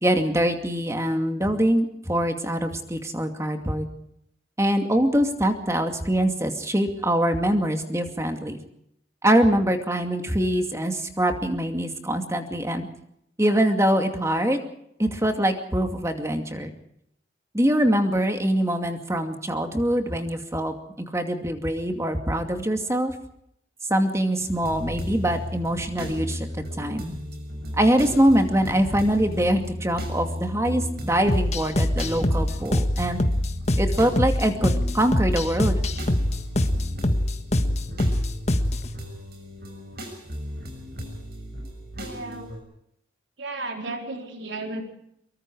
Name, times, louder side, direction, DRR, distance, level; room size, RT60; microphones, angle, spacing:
voice 1, 0.0-3.9 4.6-8.6 9.2-12.9 13.4-14.6 15.0-16.7 17.5-23.1 23.9-26.5 26.8-27.2 27.7-33.2 33.8-35.8, right 1 dB, 15° right, 6 dB, 2.4 m, -23 dB
sound 1, 24.4-42.6, equal, 55° right, 6.4 m, -35 dB
sound 2, 31.3-38.9, left 1 dB, 35° left, 1.6 m, -24 dB
voice 2, 42.0-42.5 43.4-44.8, right 2 dB, 90° right, 3 dB, 4.1 m, -34 dB
24.0 x 23.0 x 4.8 m, 0.75 s
head